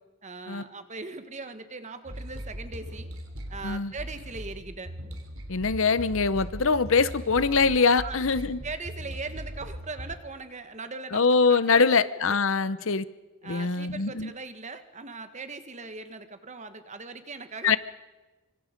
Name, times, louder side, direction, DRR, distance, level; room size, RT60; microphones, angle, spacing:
voice 1, 0.2-3.1 3.5-4.9 7.9-8.2 8.6-12.0 12.3-12.9 13.4-17.8, right 3 dB, 30° right, 9 dB, 1.6 m, -40 dB
sound 1, 2.1-10.2, equal, 70° right, 3.6 m, -39 dB
voice 2, 5.5-8.6 11.1-13.0 13.4-14.3 17.6-17.8, left 4 dB, 60° left, 15 dB, 0.8 m, -23 dB
25.0 x 25.0 x 5.3 m, 1.2 s
head